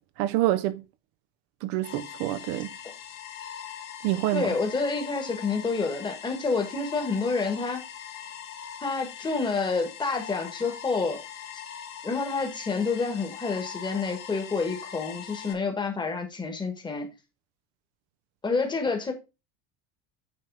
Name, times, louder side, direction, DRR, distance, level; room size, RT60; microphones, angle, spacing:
voice 1, 0.2-0.8 1.6-2.7 4.0-4.5, right 15 dB, 60° right, 0.5 m, -27 dB
sound 1, 1.8-15.5, left 9 dB, 60° left, 1.8 m, -42 dB
voice 2, 4.3-7.8 8.8-11.2 12.0-17.1 18.4-19.1, left 4 dB, 10° left, 1.3 m, -28 dB
9.1 x 3.3 x 4.7 m
cardioid pair, 165°, 36 cm